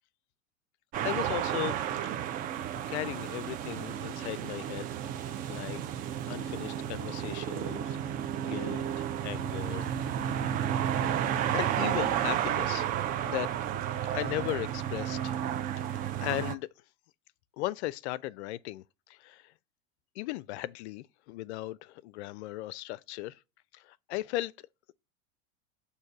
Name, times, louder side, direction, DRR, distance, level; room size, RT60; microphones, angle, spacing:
sound 1, 0.9-16.5, right 10 dB, 25° right, 0.3 m, -32 dB
voice 1, 1.0-1.8 2.2-2.3 2.9-4.9 5.2-5.8 6.3-8.0 8.4-10.2 11.5-12.9 13.2-13.5 14.1-15.3 15.9-16.7 17.6-19.4 20.2-23.4 23.7-24.5, left 16 dB, 55° left, 0.5 m, -37 dB
6.4 x 2.8 x 5.7 m
hypercardioid pair, 95°, 40 cm